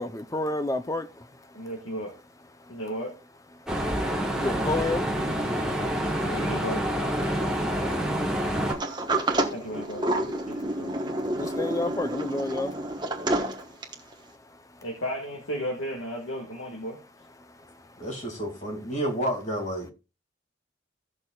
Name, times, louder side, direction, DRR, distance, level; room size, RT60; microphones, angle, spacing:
voice 1, 0.0-1.7 2.6-2.8 3.6-6.4 7.3-9.5 10.4-14.8 17.4-18.1, left 2 dB, 15° left, 0.6 m, -35 dB
voice 2, 1.5-2.1 2.7-3.1 6.2-6.8 9.5-11.0 14.8-17.0, equal, 85° left, 1.9 m, -34 dB
sound 1, 3.7-8.7, equal, 5° right, 1.4 m, -27 dB
Sliding door, 8.7-14.1, right 1 dB, 25° right, 1.2 m, -29 dB
voice 3, 18.0-19.9, right 1 dB, 40° left, 2.5 m, -30 dB
16.5 x 6.6 x 2.4 m
head